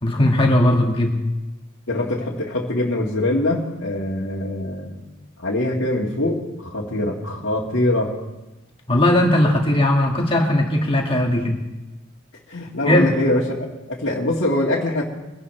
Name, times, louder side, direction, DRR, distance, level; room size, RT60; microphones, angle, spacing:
voice 1, 0.0-1.1 8.9-11.6 12.9-13.1, left 1 dB, 25° left, 0 dB, 1.9 m, -18 dB
voice 2, 1.9-5.0 5.4-8.2 12.5-13.6 13.9-15.0, left 1 dB, 65° left, -5 dB, 1.9 m, -23 dB
23.0 x 11.0 x 3.3 m, 1.0 s
head